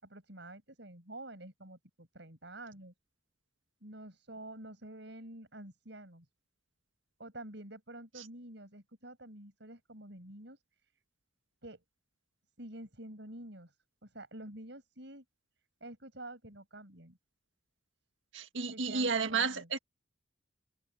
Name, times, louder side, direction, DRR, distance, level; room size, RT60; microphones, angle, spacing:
voice 1, 0.0-2.9 3.8-6.3 7.2-10.9 11.6-11.8 12.6-13.8 14.0-15.2 15.8-17.2 18.7-19.7, right 1 dB, 65° right, 6.6 m, -48 dB
voice 2, 18.3-19.8, right 5 dB, 80° right, 1.7 m, -32 dB
head